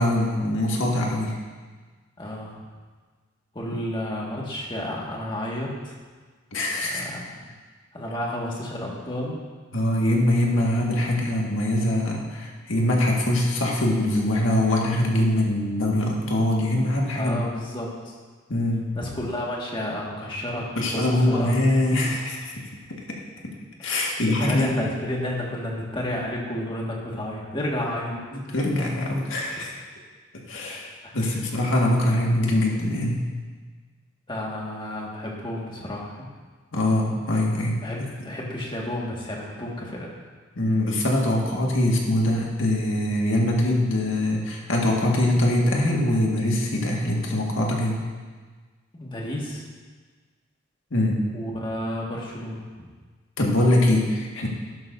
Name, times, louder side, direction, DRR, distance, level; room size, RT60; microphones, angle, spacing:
voice 1, 0.0-1.4 6.5-7.0 9.7-17.4 18.5-18.9 20.8-22.5 23.8-24.9 28.3-29.8 30.4-33.3 36.7-37.8 40.6-48.0 50.9-51.2 53.4-54.5, left 1 dB, 75° left, -2 dB, 1.8 m, -23 dB
voice 2, 2.2-2.5 3.5-6.0 6.8-7.3 7.9-9.4 17.1-18.2 19.0-21.5 23.9-28.1 31.0-31.4 34.3-36.3 37.8-40.2 48.9-49.6 51.3-52.8, left 1 dB, 25° left, -3 dB, 1.8 m, -31 dB
12.0 x 11.0 x 2.7 m, 1.4 s
head